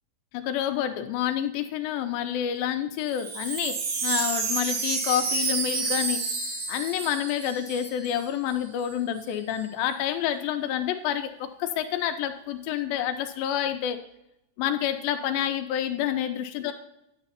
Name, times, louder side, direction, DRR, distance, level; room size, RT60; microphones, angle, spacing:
voice 1, 0.3-3.8 4.0-6.2 6.7-14.0 14.6-16.7, left 10 dB, 85° left, 7 dB, 2.4 m, -28 dB
Wind chime, 3.0-8.2 8.5-8.6 8.8-9.3, right 4 dB, 65° right, 2.9 m, -30 dB
9.6 x 8.1 x 2.8 m, 0.83 s
omnidirectional pair, 4.3 m